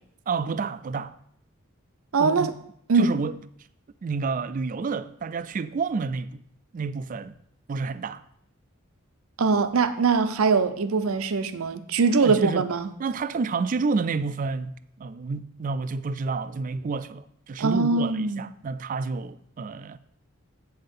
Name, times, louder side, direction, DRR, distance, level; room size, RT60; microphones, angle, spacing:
voice 1, 0.3-1.1 2.2-2.6 2.9-3.4 4.0-6.4 6.7-7.4 7.7-8.2 12.2-12.7 13.0-20.0, right 4 dB, 40° right, 0.3 m, -29 dB
voice 2, 2.1-2.5 2.9-3.1 9.4-12.9 17.6-18.4, right 4 dB, 85° right, 0.6 m, -22 dB
7.9 x 5.6 x 5.3 m
head